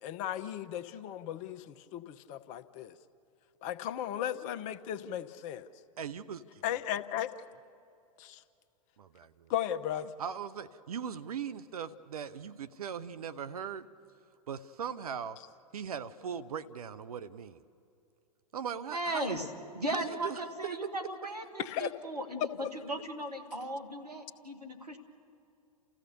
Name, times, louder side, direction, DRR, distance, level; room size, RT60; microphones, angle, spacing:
voice 1, 0.0-2.9 3.6-5.6 6.6-7.3 8.2-8.4 9.5-10.1 21.6-21.9, left 11 dB, 40° left, 11 dB, 0.9 m, -36 dB
voice 2, 6.0-6.4 9.0-9.5 10.2-13.9 14.5-15.4 15.7-17.6 18.5-19.3 19.9-20.4 20.8-20.9, right 7 dB, 70° right, 14 dB, 0.8 m, -39 dB
voice 3, 18.9-19.5 19.7-25.0, right 1 dB, 90° right, 5 dB, 2.2 m, -37 dB
29.5 x 15.0 x 6.9 m, 2.6 s
figure-of-eight pair, 100°, 20 cm